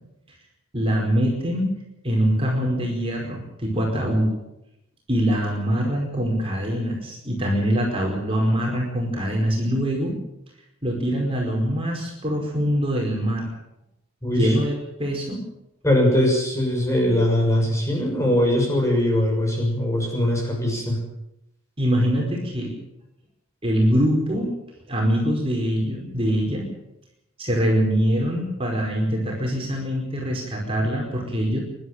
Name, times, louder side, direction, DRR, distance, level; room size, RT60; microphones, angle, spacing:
voice 1, 0.7-1.7 2.0-4.3 5.1-10.1 10.8-13.5 14.3-14.7 15.0-15.4 21.8-22.7 23.6-24.5 24.9-26.7 27.4-31.6, equal, 25° right, -1 dB, 5.0 m, -23 dB
voice 2, 14.2-14.6 15.8-21.0, left 1 dB, 15° left, 0 dB, 6.6 m, -21 dB
25.0 x 12.5 x 9.1 m, 0.86 s
head